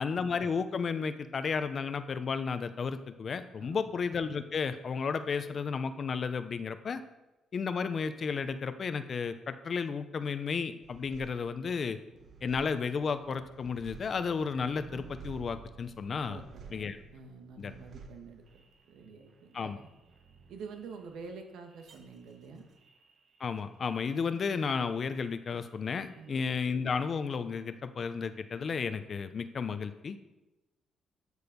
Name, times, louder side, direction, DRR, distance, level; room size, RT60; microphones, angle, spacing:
voice 1, 0.0-7.0 7.5-12.0 12.4-16.4 16.7-17.0 17.6-17.7 19.5-19.8 23.4-30.2, left 5 dB, 45° left, 11 dB, 0.9 m, -33 dB
voice 2, 3.6-4.0 16.3-19.7 20.5-22.6 26.2-26.4, right 4 dB, 85° right, 4 dB, 1.9 m, -48 dB
sound 1, 10.8-25.7 26.0-26.8, right 5 dB, 60° right, 1.7 m, -54 dB
13.0 x 6.7 x 5.4 m, 1.0 s
cardioid pair, 90°, 0 cm